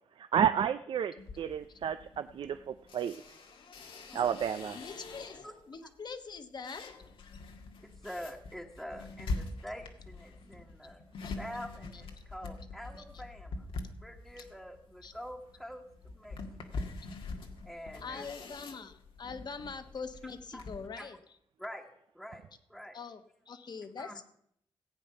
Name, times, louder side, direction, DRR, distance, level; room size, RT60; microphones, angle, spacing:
voice 1, 0.2-3.2 4.1-4.8, right 8 dB, 75° right, 10 dB, 0.5 m, -31 dB
sound 1, 1.2-5.7 6.1-20.9, left 3 dB, 85° left, 1.6 m, -44 dB
voice 2, 4.1-4.7 5.3-5.5 5.8-5.9 7.8-11.1 11.4-13.7 14.0-16.8 17.6-18.3 20.5-20.6 21.0-21.2 21.6-21.9 22.1-22.4 22.7-23.0 24.0-24.2, equal, ahead, -1 dB, 1.4 m, -46 dB
voice 3, 4.7-6.9 11.2-11.4 11.9-12.0 15.0-15.1 18.0-21.2 22.9-24.3, left 5 dB, 55° left, 9 dB, 1.2 m, -43 dB
15.5 x 8.5 x 5.8 m, 0.71 s
cardioid pair, 85°, 9 cm